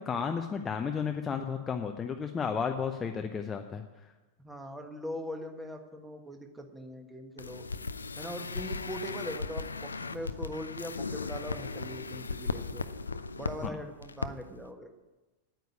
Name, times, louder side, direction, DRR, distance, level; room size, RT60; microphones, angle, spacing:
voice 1, 0.0-3.8 13.6-13.8, left 6 dB, 20° left, 4 dB, 0.8 m, -33 dB
voice 2, 4.4-7.6 8.2-12.8 13.3-14.9, equal, 5° right, 5 dB, 1.5 m, -41 dB
sound 1, 7.4-13.7 14.0-14.3 14.6-14.7, left 4 dB, 75° left, 0.5 m, -37 dB
9.3 x 9.3 x 8.5 m, 1.1 s
figure-of-eight pair, 90°, 0 cm